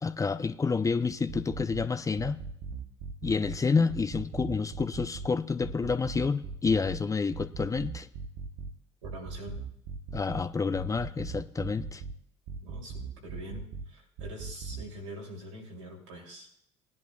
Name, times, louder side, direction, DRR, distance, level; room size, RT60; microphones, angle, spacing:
voice 1, 0.0-2.4 3.2-8.1 10.1-12.0, left 4 dB, 20° left, 0.6 m, -29 dB
sound 1, 1.1-1.8 2.2-3.6 3.9-5.3 5.6-7.0 7.3-8.7 9.0-10.4 10.7-12.1 12.5-13.8 14.2-14.8, right 5 dB, 60° right, 0.9 m, -39 dB
voice 2, 9.0-9.6 12.6-16.5, equal, 80° right, 3.0 m, -44 dB
19.0 x 10.5 x 2.3 m
hypercardioid pair, 60°, 15 cm